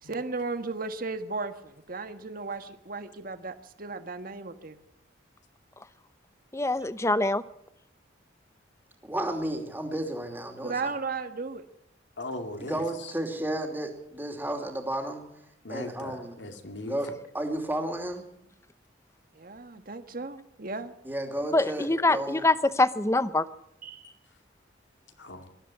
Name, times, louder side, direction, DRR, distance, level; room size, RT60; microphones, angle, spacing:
voice 1, 0.0-4.8 10.6-11.6 19.3-21.0 23.8-24.1, right 3 dB, 50° right, 9 dB, 1.5 m, -35 dB
voice 2, 6.5-7.4 21.5-23.4, left 2 dB, 15° left, 14 dB, 0.7 m, -24 dB
voice 3, 9.0-10.9 12.7-15.2 15.7-16.4 16.8-18.2 21.0-22.5, right 1 dB, 10° right, 4 dB, 2.8 m, -32 dB
voice 4, 12.2-12.8 15.6-17.0 25.2-25.5, left 1 dB, 70° left, 5 dB, 2.5 m, -38 dB
20.0 x 13.5 x 10.0 m, 0.81 s
head